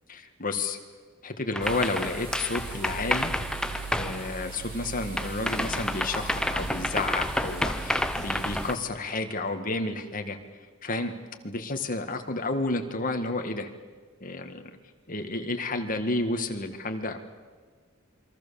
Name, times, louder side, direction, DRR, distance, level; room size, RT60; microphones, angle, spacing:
voice 1, 0.1-0.8 1.2-3.3 3.9-10.4 10.8-11.1 11.4-13.7 14.2-14.7 15.1-17.2, left 2 dB, 40° left, 6 dB, 1.9 m, -31 dB
sound 1, 1.5-4.9 5.2-8.7, left 1 dB, 5° left, 0.8 m, -30 dB
sound 2, 1.6-8.8, right 4 dB, 50° right, 6.7 m, -40 dB
27.5 x 23.0 x 7.2 m, 1.5 s
head